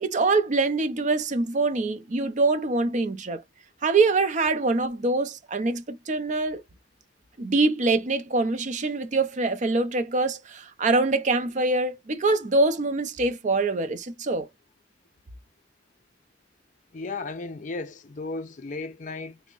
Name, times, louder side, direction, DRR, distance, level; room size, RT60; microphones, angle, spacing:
voice 1, 0.0-3.4 3.8-6.6 7.4-14.5, right 3 dB, 40° right, 0.5 m, -24 dB
voice 2, 16.9-19.4, left 3 dB, 45° left, 0.5 m, -35 dB
3.4 x 2.1 x 3.8 m
head